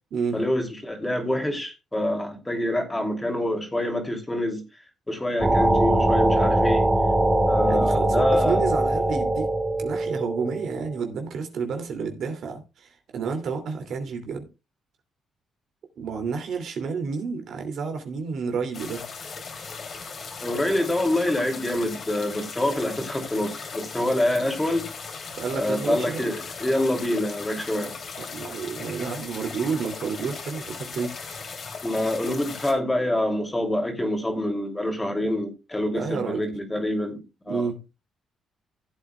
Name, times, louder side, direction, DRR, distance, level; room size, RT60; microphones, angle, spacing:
voice 1, 0.3-4.6 5.1-6.9 7.5-8.7 20.4-24.9 25.5-28.0 31.8-37.7, left 1 dB, 15° left, 3.0 m, -26 dB
sound 1, 5.4-10.8, right 1 dB, 10° right, 2.2 m, -22 dB
voice 2, 7.7-9.5 9.8-14.5 16.0-19.0 25.3-26.3 28.3-31.2 35.8-36.4 37.5-37.8, right 5 dB, 70° right, 2.7 m, -30 dB
sound 2, 18.7-32.7, left 5 dB, 50° left, 3.0 m, -38 dB
16.0 x 8.1 x 2.4 m
cardioid pair, 90°, 0 cm